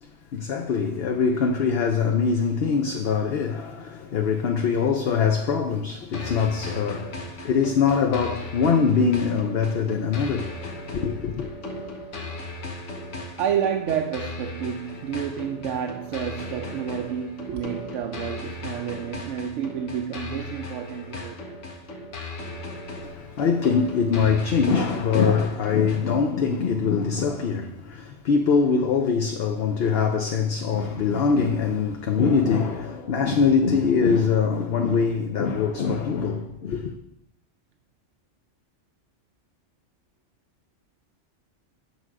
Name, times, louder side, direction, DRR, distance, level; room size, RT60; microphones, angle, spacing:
voice 1, 0.0-11.5 23.0-36.9, left 5 dB, 60° left, 0.9 m, -23 dB
sound 1, 6.1-26.1, left 2 dB, 80° left, 1.4 m, -37 dB
voice 2, 13.4-21.6, right 8 dB, 90° right, 0.9 m, -30 dB
8.3 x 6.3 x 4.7 m
omnidirectional pair, 1.2 m